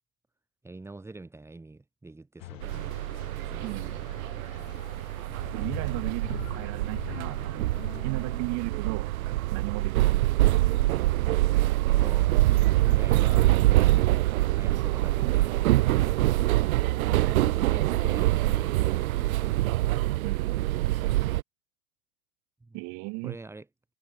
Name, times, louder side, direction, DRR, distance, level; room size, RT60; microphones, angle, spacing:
voice 1, 0.6-3.0 3.5-3.9 11.8-12.4 12.9-14.2 14.5-16.1 17.3-19.6 22.6-22.8 23.2-23.7, right 2 dB, 5° right, 5.2 m, -44 dB
sound 1, 2.4-8.6, left 17 dB, 60° left, 2.8 m, -44 dB
sound 2, 2.6-21.4, right 16 dB, 70° right, 0.7 m, -25 dB
voice 2, 3.6-4.0 5.5-7.7 8.0-9.1 9.5-10.7 16.9-17.4 20.2-20.6 22.7-23.4, right 26 dB, 40° right, 3.9 m, -37 dB
hypercardioid pair, 145°, 44 cm